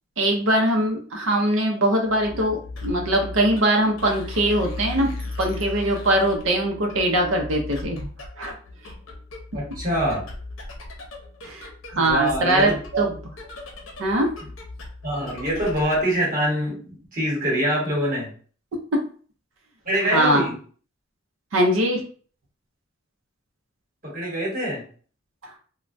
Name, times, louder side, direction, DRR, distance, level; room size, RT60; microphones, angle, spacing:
voice 1, 0.2-5.1 5.4-8.1 8.4-8.5 11.4-11.7 11.9-13.1 14.0-14.3 20.1-20.4 21.5-22.0, right 1 dB, 75° right, 2 dB, 0.6 m, -21 dB
sound 1, 2.1-16.1, left 2 dB, 75° left, 0.7 m, -37 dB
voice 2, 9.5-10.3 11.9-13.0 15.0-18.3 19.9-20.6 24.0-24.9, right 1 dB, 45° right, -3 dB, 1.1 m, -25 dB
3.2 x 2.1 x 2.5 m, 0.43 s
head